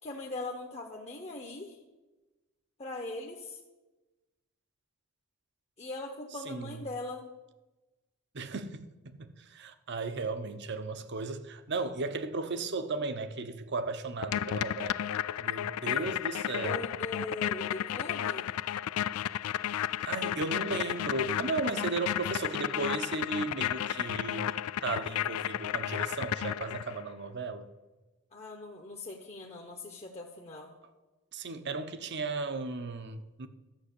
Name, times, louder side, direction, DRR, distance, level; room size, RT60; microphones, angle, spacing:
voice 1, 0.0-1.8 2.8-3.6 5.8-7.3 16.6-18.5 28.3-30.7, left 2 dB, 30° left, 0.9 m, -40 dB
voice 2, 6.4-6.8 8.3-14.9 15.4-16.8 20.1-27.7 31.3-33.5, right 3 dB, 55° right, 0.8 m, -35 dB
sound 1, 14.2-27.0, left 10 dB, 80° left, 0.3 m, -33 dB
13.0 x 6.2 x 8.3 m
head